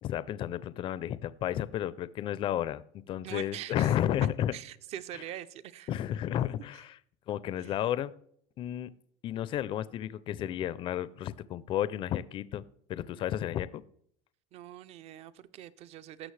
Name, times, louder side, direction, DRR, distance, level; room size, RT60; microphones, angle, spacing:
voice 1, 0.0-2.8 3.1-4.5 5.9-7.0 7.3-8.1 8.6-8.9 9.2-12.6 12.9-13.8, left 11 dB, 35° left, 0.4 m, -32 dB
voice 2, 3.2-3.9 4.5-5.9 7.6-7.7 14.5-16.3, right 12 dB, 45° right, 0.5 m, -43 dB
16.0 x 6.1 x 3.2 m
cardioid pair, 150°, 15 cm